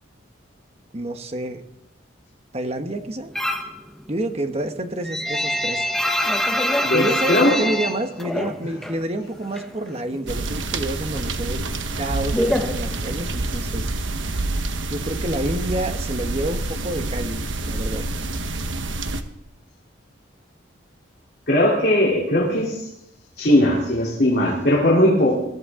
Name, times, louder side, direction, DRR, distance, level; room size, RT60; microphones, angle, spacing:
voice 1, 0.9-1.6 2.5-3.3 4.1-5.9 6.9-11.7 12.0-13.9 14.2-14.3 14.9-18.1, right 1 dB, 30° right, 6 dB, 1.2 m, -29 dB
sound 1, 3.4-3.8 4.1-9.0 9.3-10.3 10.6-13.4, left 1 dB, ahead, 1.0 m, -25 dB
voice 2, 6.8-7.7 21.5-22.9 23.4-25.3, left 1 dB, 50° left, -3 dB, 3.2 m, -19 dB
sound 2, 10.3-19.2, right 2 dB, 75° right, 1.2 m, -27 dB
21.5 x 14.0 x 3.7 m, 0.80 s
head